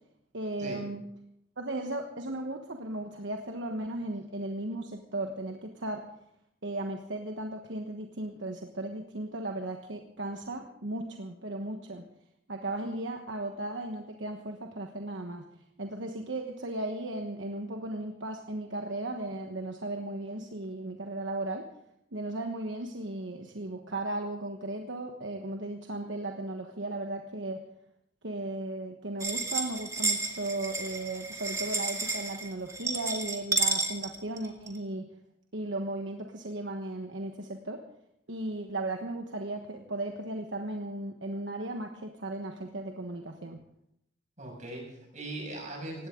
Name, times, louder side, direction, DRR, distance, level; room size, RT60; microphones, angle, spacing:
voice 1, 0.3-1.0 1.6-6.1 6.6-12.1 12.5-15.5 15.8-21.7 22.1-27.6 28.2-35.1 35.5-37.8 38.3-43.6, right 2 dB, 70° right, 3 dB, 1.3 m, -36 dB
sound 1, 29.2-34.8, right 2 dB, 15° right, 2.1 m, -31 dB
voice 2, 44.4-46.1, right 2 dB, 40° right, 0 dB, 6.5 m, -40 dB
19.0 x 16.5 x 3.8 m, 0.76 s
head